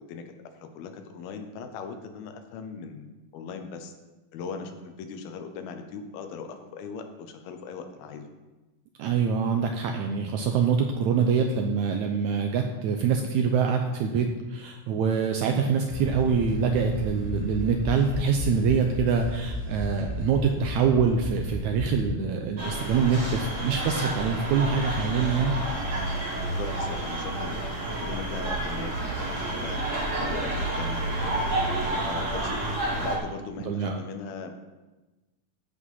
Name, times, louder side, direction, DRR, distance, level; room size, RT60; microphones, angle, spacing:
voice 1, 0.0-3.1 3.3-3.9 4.3-8.3 26.4-29.8 30.2-32.6 33.0-34.6, left 5 dB, 90° left, 7 dB, 2.8 m, -39 dB
voice 2, 9.0-25.5 33.6-34.0, right 6 dB, 85° right, 4 dB, 1.7 m, -25 dB
sound 1, 15.9-22.1, equal, 65° left, 0.5 m, -33 dB
sound 2, 22.6-33.2, right 1 dB, 70° right, 0.7 m, -29 dB
15.0 x 5.1 x 5.5 m, 1.1 s
omnidirectional pair, 4.2 m